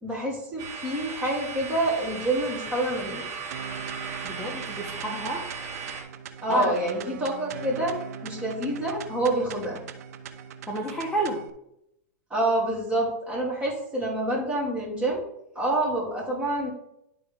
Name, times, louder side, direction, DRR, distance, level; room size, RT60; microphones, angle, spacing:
voice 1, 0.0-3.2 6.4-9.8 12.3-16.7, right 1 dB, 15° right, -5 dB, 3.0 m, -27 dB
sound 1, 0.6-6.0, right 5 dB, 45° right, 2.3 m, -37 dB
sound 2, 3.5-11.5, right 8 dB, 70° right, 0.7 m, -40 dB
voice 2, 4.2-5.4 6.5-6.7 10.7-11.4, right 1 dB, 5° left, -2 dB, 1.1 m, -29 dB
11.0 x 3.7 x 3.6 m, 0.79 s
hypercardioid pair, 120°, 9 cm